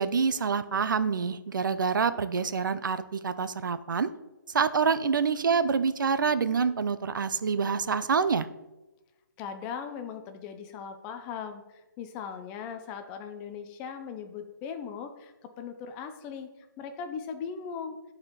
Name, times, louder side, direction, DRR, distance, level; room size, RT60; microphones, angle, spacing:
voice 1, 0.0-4.1 4.5-8.5, right 5 dB, 75° right, 13 dB, 0.6 m, -26 dB
voice 2, 9.4-16.5 16.8-18.0, left 6 dB, 10° left, 8 dB, 0.4 m, -39 dB
11.0 x 4.4 x 3.9 m, 1.0 s
hypercardioid pair, 165°, 11 cm